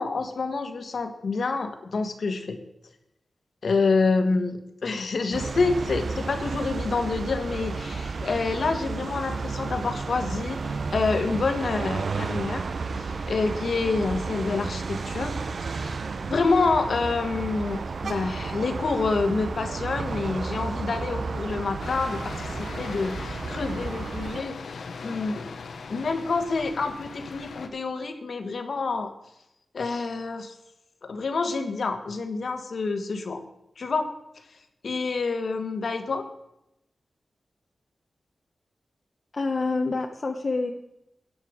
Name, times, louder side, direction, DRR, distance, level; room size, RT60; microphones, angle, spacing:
voice 1, 0.0-2.6 3.6-12.6 13.0-16.0 16.3-25.5 25.9-29.1 29.7-30.5 31.0-33.4 33.8-34.1 34.8-36.2, left 4 dB, 70° left, 7 dB, 1.2 m, -27 dB
sound 1, 5.3-24.4, right 4 dB, 65° right, 0.6 m, -32 dB
sound 2, 21.8-27.7, left 4 dB, 90° left, 0.8 m, -39 dB
voice 2, 39.3-40.7, left 3 dB, 50° left, 3 dB, 0.8 m, -27 dB
12.0 x 8.8 x 4.8 m, 0.86 s
wide cardioid pair, 85°, 0 cm